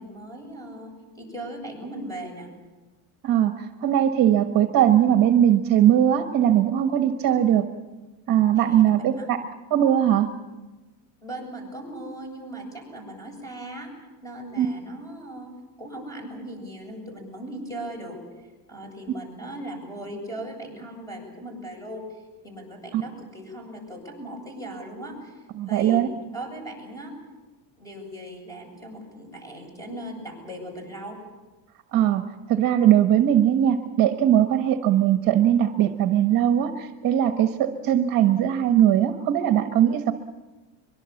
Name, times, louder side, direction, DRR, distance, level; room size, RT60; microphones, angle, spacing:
voice 1, 0.0-2.5 8.6-8.8 9.2-9.3 11.2-13.9 14.2-15.5 15.8-26.1 26.3-27.1 27.8-31.2, right 1 dB, 5° left, 3 dB, 7.8 m, -38 dB
voice 2, 3.2-7.7 8.3-9.4 9.7-10.3 14.6-14.7 22.9-23.0 25.6-26.1 31.9-40.1, right 10 dB, 45° right, 7 dB, 1.4 m, -20 dB
23.5 x 23.5 x 7.3 m, 1.2 s
cardioid pair, 145°, 46 cm